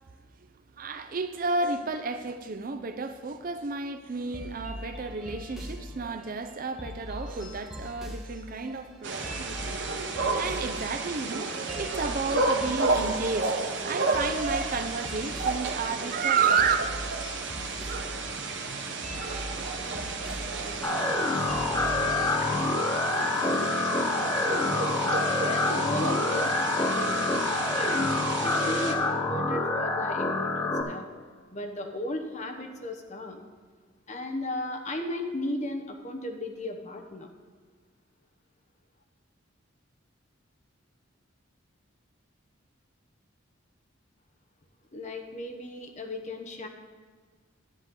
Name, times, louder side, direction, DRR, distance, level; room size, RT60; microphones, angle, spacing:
voice 1, 0.8-9.8 10.1-16.8, right 4 dB, 45° right, 0.5 m, -31 dB
sound 1, 4.3-22.3, left 1 dB, ahead, 1.2 m, -42 dB
sound 2, 9.0-28.9, right 3 dB, 60° right, 1.0 m, -32 dB
sound 3, 20.8-30.8, left 3 dB, 15° left, 0.7 m, -27 dB
voice 2, 25.4-31.0 31.5-33.4 34.1-37.3 44.9-46.7, left 1 dB, 35° left, 1.0 m, -35 dB
10.0 x 9.7 x 3.8 m
head